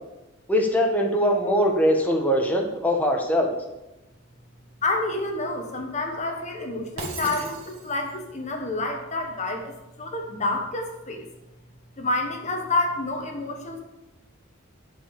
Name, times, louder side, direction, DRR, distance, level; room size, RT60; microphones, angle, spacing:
voice 1, 0.5-3.5, equal, 10° left, 1 dB, 1.4 m, -22 dB
voice 2, 4.8-11.3 12.0-13.8, left 2 dB, 35° left, 3 dB, 1.2 m, -28 dB
Shatter, 7.0-8.2, right 3 dB, 75° right, 2.5 m, -37 dB
11.0 x 5.4 x 7.1 m, 1.0 s
head